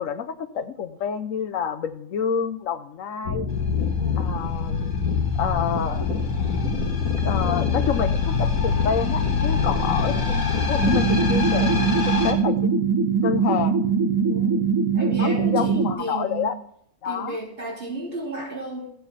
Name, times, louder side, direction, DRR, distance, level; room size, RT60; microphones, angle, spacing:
voice 1, 0.0-3.5 4.2-4.9 5.4-6.1 6.4-6.5 7.2-11.7 12.1-12.8 13.2-13.8 15.2-16.6 17.0-17.4, left 7 dB, 65° left, 10 dB, 1.2 m, -28 dB
sound 1, 3.2-12.3, left 5 dB, 85° left, 2.2 m, -24 dB
sound 2, 10.8-15.9, right 5 dB, 15° right, 1.6 m, -22 dB
voice 2, 13.3-13.6 14.2-14.6 14.9-16.5 17.0-18.9, right 2 dB, 40° right, -3 dB, 3.8 m, -34 dB
15.5 x 7.9 x 4.2 m, 0.67 s
omnidirectional pair, 1.5 m